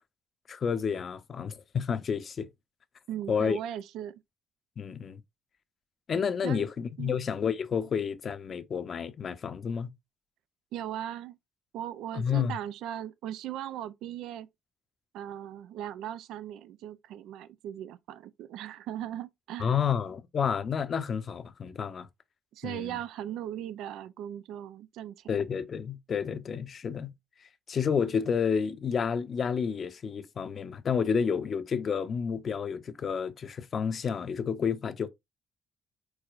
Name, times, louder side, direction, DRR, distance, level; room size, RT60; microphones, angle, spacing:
voice 1, 0.5-2.5 3.3-3.6 4.8-5.2 6.1-9.9 12.1-12.5 19.6-22.1 22.6-23.0 25.3-27.1 27.7-35.1, left 7 dB, 50° left, 0.6 m, -30 dB
voice 2, 3.1-4.2 6.4-6.7 7.0-7.2 10.7-11.4 11.7-14.5 15.1-19.8 22.5-25.3, right 11 dB, 90° right, 0.3 m, -38 dB
4.7 x 4.2 x 2.4 m
cardioid pair, 90°, 0 cm